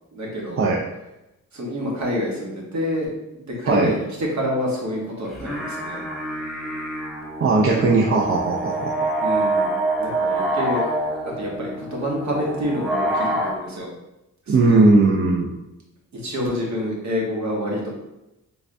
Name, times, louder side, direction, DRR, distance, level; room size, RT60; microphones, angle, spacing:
voice 1, 0.1-0.6 1.5-6.0 9.2-9.7 10.0-10.8 11.4-13.9 14.5-14.9 16.1-17.9, equal, 60° right, -2 dB, 1.1 m, -27 dB
sound 1, 5.2-13.5, right 1 dB, ahead, 0.7 m, -26 dB
voice 2, 7.4-8.9 14.5-15.5, right 3 dB, 45° right, -2 dB, 0.5 m, -18 dB
3.5 x 3.2 x 2.6 m, 0.95 s
wide cardioid pair, 110°, 31 cm